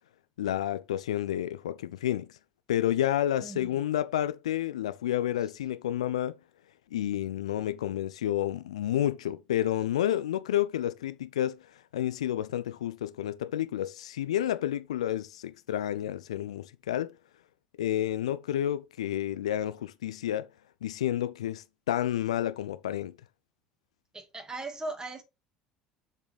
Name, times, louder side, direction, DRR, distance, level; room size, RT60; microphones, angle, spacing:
voice 1, 0.4-2.4 2.7-6.4 6.9-17.1 17.8-20.5 20.8-23.1, left 12 dB, 85° left, 0.3 m, -30 dB
voice 2, 3.4-3.7 24.1-25.2, right 2 dB, 20° right, 2.1 m, -38 dB
7.1 x 4.0 x 5.0 m
hypercardioid pair, 65°, 3 cm